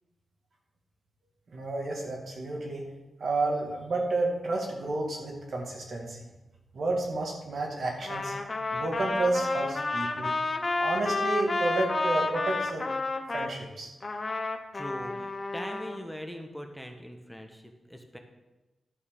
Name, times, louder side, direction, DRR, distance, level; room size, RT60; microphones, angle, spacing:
voice 1, 1.5-2.8 3.2-6.2 6.7-8.3 8.7-10.3 10.8-12.9 13.3-13.9, right 2 dB, 65° right, 0 dB, 2.3 m, -31 dB
Trumpet, 8.0-13.5 14.0-16.0, left 3 dB, 40° left, 1.0 m, -30 dB
voice 2, 14.7-18.2, equal, 5° left, 4 dB, 1.4 m, -41 dB
11.0 x 4.5 x 7.3 m, 1.1 s
cardioid pair, 65°, 0 cm